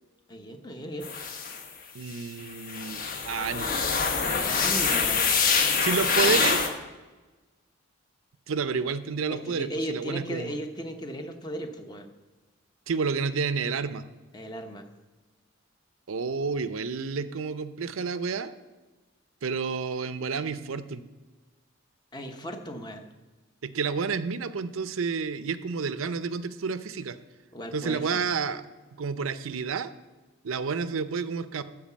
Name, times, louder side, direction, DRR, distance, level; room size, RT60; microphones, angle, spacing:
voice 1, 0.3-1.1 4.4-5.3 9.3-12.1 14.3-14.9 22.1-23.1 27.5-28.2, equal, 20° left, 5 dB, 0.9 m, -36 dB
sound 1, 1.0-1.6 2.2-2.3 2.6-6.7, left 5 dB, 40° left, 1.2 m, -25 dB
voice 2, 1.9-3.7 5.8-6.6 8.5-10.5 12.9-14.0 16.1-18.5 19.4-21.0 23.6-27.2 27.7-28.6 29.0-29.9 30.4-31.6, right 5 dB, 85° right, 13 dB, 0.6 m, -30 dB
12.5 x 4.8 x 7.2 m, 1.2 s
head